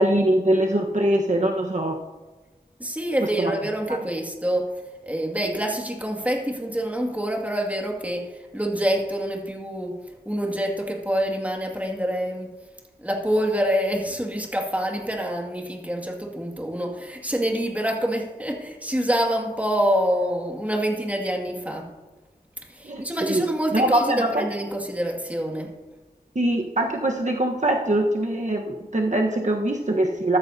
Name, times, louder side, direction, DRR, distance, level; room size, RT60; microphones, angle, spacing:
voice 1, 0.0-2.0 3.4-3.5 3.9-4.0 22.8-23.4 23.7-24.4 26.3-30.4, right 1 dB, 50° right, 1 dB, 1.3 m, -22 dB
voice 2, 2.8-4.7 5.0-10.0 10.3-12.5 13.0-21.9 22.7-25.7, equal, 10° right, 1 dB, 2.2 m, -26 dB
13.5 x 13.5 x 2.8 m, 1.2 s
wide cardioid pair, 40°, 16 cm